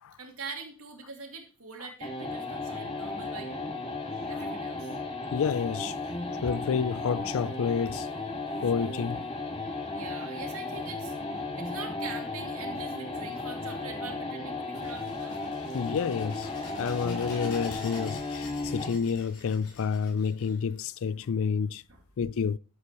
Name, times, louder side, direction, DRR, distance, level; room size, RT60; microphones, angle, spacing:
voice 1, 0.2-3.6 4.3-5.0 9.5-9.6 9.9-15.4 21.9-22.0, right 4 dB, 65° right, 2.6 m, -43 dB
sound 1, 2.0-19.0, left 3 dB, 25° left, 1.9 m, -35 dB
voice 2, 5.3-6.1 6.4-8.1 8.6-9.2 15.7-16.5 16.8-21.8 22.2-22.6, left 6 dB, 65° left, 0.4 m, -29 dB
sound 2, 14.7-21.2, left 3 dB, 85° left, 5.0 m, -47 dB
12.0 x 8.2 x 3.1 m
head